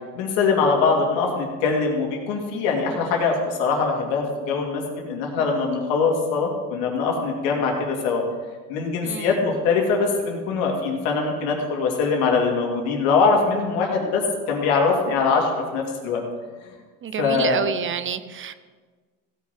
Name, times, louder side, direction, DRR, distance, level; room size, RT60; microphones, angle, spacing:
voice 1, 0.1-8.2 8.7-14.2 14.5-16.2 17.2-17.6, left 4 dB, 90° left, 0 dB, 2.7 m, -22 dB
voice 2, 17.0-18.5, right 8 dB, 35° right, 14 dB, 0.6 m, -28 dB
16.0 x 5.9 x 5.8 m, 1.4 s
cardioid pair, 110°, 38 cm